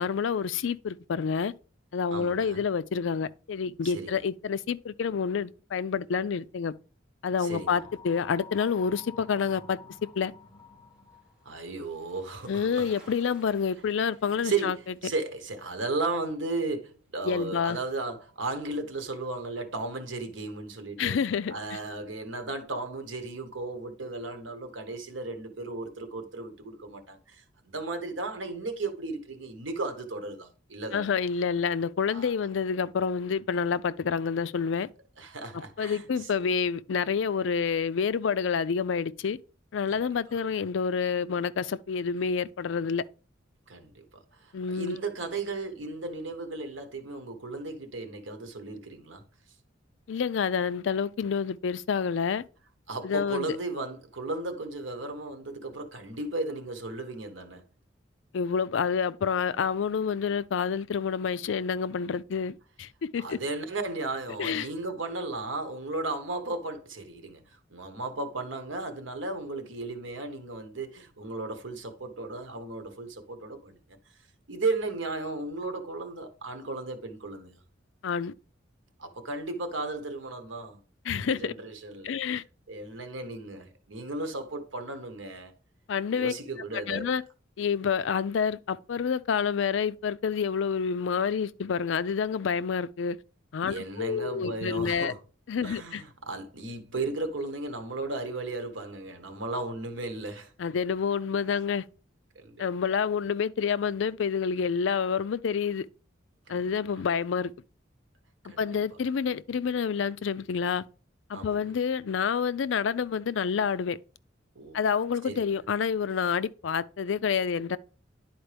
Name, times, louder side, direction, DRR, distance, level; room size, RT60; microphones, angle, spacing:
voice 1, 0.0-1.5 1.9-6.7 7.2-9.8 10.2-10.3 12.5-14.8 17.3-17.8 21.0-21.8 30.9-34.9 35.5-39.4 39.7-43.0 44.5-45.0 50.1-52.4 53.0-53.6 58.3-63.4 64.4-64.7 78.0-78.3 81.1-81.5 82.0-82.4 85.9-86.3 86.7-87.2 87.6-93.2 93.5-95.1 95.5-96.0 100.6-101.8 102.6-105.9 106.5-107.5 108.6-110.8 111.3-114.0 114.7-117.8, left 6 dB, 75° left, 0.4 m, -28 dB
voice 2, 2.1-2.6 3.8-4.2 7.4-7.8 11.4-12.9 14.4-21.1 21.5-31.2 32.1-32.3 35.2-36.1 39.9-40.0 43.7-49.2 52.9-57.6 63.2-73.8 74.5-77.6 79.0-80.8 81.1-82.2 82.7-85.5 86.1-87.1 93.6-95.2 95.6-100.5 102.3-102.6 106.5-107.0 108.5-108.8 111.3-111.6 114.5-114.8 115.2-115.6, right 3 dB, 80° right, 1.2 m, -35 dB
sound 1, 7.4-11.4, left 6 dB, 25° left, 0.6 m, -50 dB
Bicycle, 9.1-17.4 17.7-17.8, equal, 5° right, 2.5 m, -60 dB
10.5 x 4.4 x 3.4 m
head